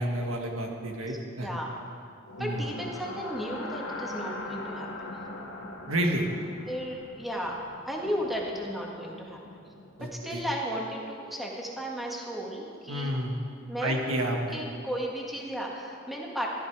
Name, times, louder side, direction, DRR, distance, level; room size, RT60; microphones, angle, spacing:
voice 1, 0.0-1.5 2.4-2.6 5.9-6.3 10.0-10.4 12.9-13.3 13.8-14.6, right 1 dB, 85° right, 1 dB, 1.7 m, -30 dB
voice 2, 1.1-1.7 2.4-4.9 6.7-9.4 10.0-13.1 13.7-16.5, equal, ahead, -2 dB, 1.6 m, -34 dB
sound 1, 2.2-10.3, left 2 dB, 90° left, 1.7 m, -41 dB
13.5 x 13.0 x 4.8 m, 2.4 s
head